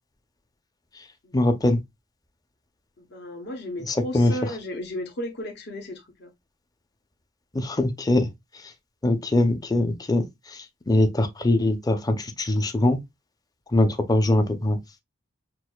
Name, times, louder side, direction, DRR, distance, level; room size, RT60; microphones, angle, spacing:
voice 1, 1.3-1.8 3.9-4.3 7.5-8.3 8.5-8.7 9.0-13.0 13.7-14.8, left 1 dB, 20° left, 0.5 m, -22 dB
voice 2, 3.0-6.3, left 1 dB, 55° left, 0.8 m, -34 dB
6.1 x 2.5 x 2.3 m
head